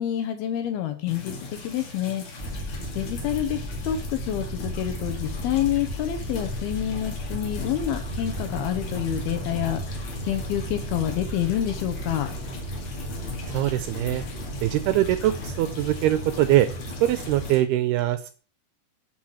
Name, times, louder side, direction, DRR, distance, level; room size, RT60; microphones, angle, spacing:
voice 1, 0.0-2.2 2.6-2.7 3.0-12.3, left 11 dB, 75° left, 8 dB, 2.5 m, -28 dB
sound 1, 1.1-17.6, left 3 dB, 45° left, 2.9 m, -39 dB
sound 2, 2.4-17.5, right 1 dB, 30° left, 4.2 m, -35 dB
voice 2, 13.5-14.2 14.6-16.7 17.0-18.3, right 14 dB, 80° right, 12 dB, 2.4 m, -22 dB
11.5 x 5.8 x 6.3 m, 0.39 s
omnidirectional pair, 5.2 m